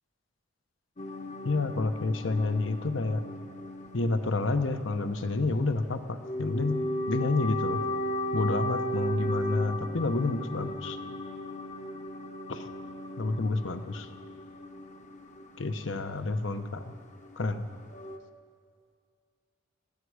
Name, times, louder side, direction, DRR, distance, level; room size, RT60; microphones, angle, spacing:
sound 1, 1.0-18.2, equal, 35° left, 0.9 m, -36 dB
voice 1, 1.4-3.2 3.9-7.8 8.3-11.0 12.5-12.7 13.2-14.1 15.6-16.9 17.4-17.7, left 3 dB, 70° left, 9 dB, 0.9 m, -29 dB
20.5 x 14.0 x 4.9 m, 2.1 s
head